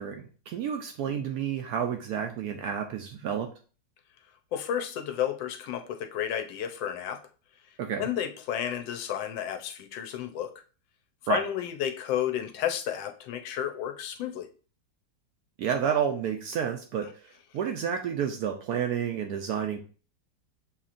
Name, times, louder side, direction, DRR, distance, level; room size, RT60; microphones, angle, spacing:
voice 1, 0.0-3.5 7.8-8.1 11.3-11.4 15.6-17.1 17.5-19.8, right 8 dB, 70° right, 5 dB, 0.9 m, -30 dB
voice 2, 4.5-7.2 8.0-10.5 11.3-14.5, left 10 dB, 85° left, 6 dB, 1.4 m, -31 dB
6.8 x 2.9 x 2.5 m, 0.38 s
omnidirectional pair, 2.0 m